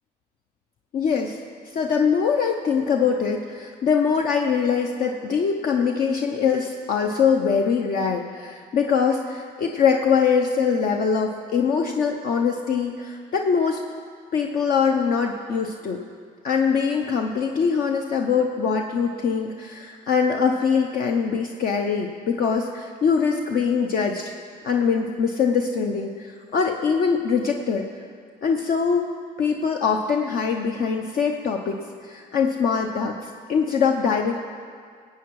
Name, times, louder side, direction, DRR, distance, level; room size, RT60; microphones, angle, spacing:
voice 1, 0.9-1.4 1.7-13.8 14.3-16.0 16.4-24.4 24.6-27.9 28.4-29.1 29.4-34.3, left 6 dB, 60° left, 2 dB, 0.9 m, -23 dB
18.0 x 8.4 x 4.8 m, 2.1 s
cardioid pair, 110°, 17 cm